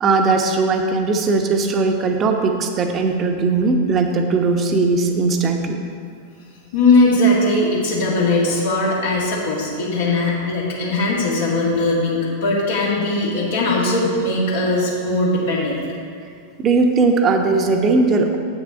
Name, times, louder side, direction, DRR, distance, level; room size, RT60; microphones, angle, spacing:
voice 1, 0.0-5.8 7.0-7.1 16.6-18.4, right 3 dB, 30° right, 4 dB, 0.9 m, -18 dB
voice 2, 6.7-15.8, left 2 dB, 60° left, -5 dB, 1.9 m, -19 dB
8.3 x 6.9 x 5.1 m, 2.4 s
figure-of-eight pair, 90°, 0 cm